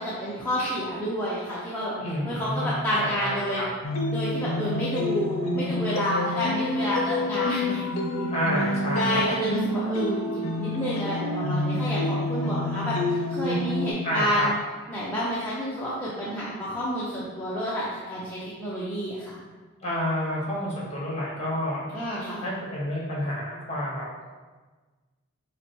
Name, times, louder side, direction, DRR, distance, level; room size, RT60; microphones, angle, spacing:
voice 1, 0.0-2.0 2.2-3.6 4.1-8.3 8.9-14.5 14.9-19.4 21.9-22.5, equal, 10° left, -9 dB, 0.6 m, -29 dB
voice 2, 2.0-3.7 8.3-9.4 14.0-14.5 19.8-21.9 22.4-24.0, equal, 30° left, -5 dB, 1.3 m, -29 dB
sound 1, 3.8-13.9, left 2 dB, 70° left, 0.6 m, -28 dB
5.6 x 2.1 x 4.5 m, 1.3 s
head